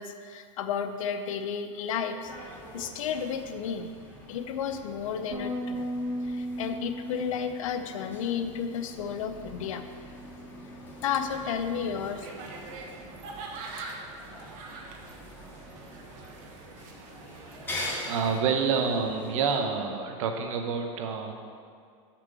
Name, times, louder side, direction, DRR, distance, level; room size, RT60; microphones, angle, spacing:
voice 1, 0.0-3.9 4.3-5.8 6.2-9.8 11.0-12.3, left 7 dB, 85° left, 8 dB, 0.7 m, -32 dB
sound 1, 2.2-19.6, left 1 dB, 15° left, 2.2 m, -44 dB
Bass guitar, 5.3-11.6, equal, 20° right, 0.8 m, -38 dB
sound 2, 12.2-18.4, right 3 dB, 55° right, 1.2 m, -44 dB
voice 2, 18.0-21.3, right 5 dB, 80° right, 4 dB, 1.1 m, -28 dB
6.2 x 6.0 x 6.8 m, 2.2 s
supercardioid pair, 125°, 17 cm